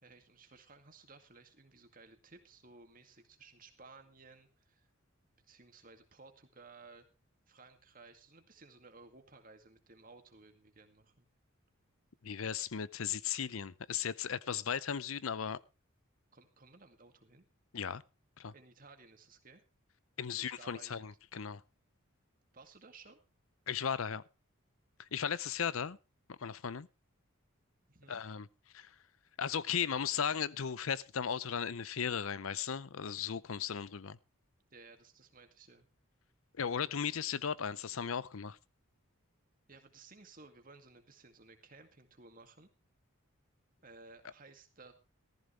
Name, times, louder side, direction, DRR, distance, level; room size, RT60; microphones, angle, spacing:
voice 1, 0.0-4.9 5.4-7.1 7.5-11.3 16.3-17.5 18.5-19.6 20.3-21.0 22.5-23.2 27.9-28.2 34.7-35.9 39.7-42.7 43.8-44.9, right 3 dB, 40° right, 2.2 m, -57 dB
voice 2, 12.2-15.6 17.7-18.0 18.4-18.5 20.2-21.6 23.7-24.2 25.0-26.0 26.3-26.9 28.1-28.5 28.7-28.9 29.4-34.2 36.5-38.6, left 7 dB, 75° left, 0.6 m, -36 dB
15.0 x 14.0 x 3.3 m
head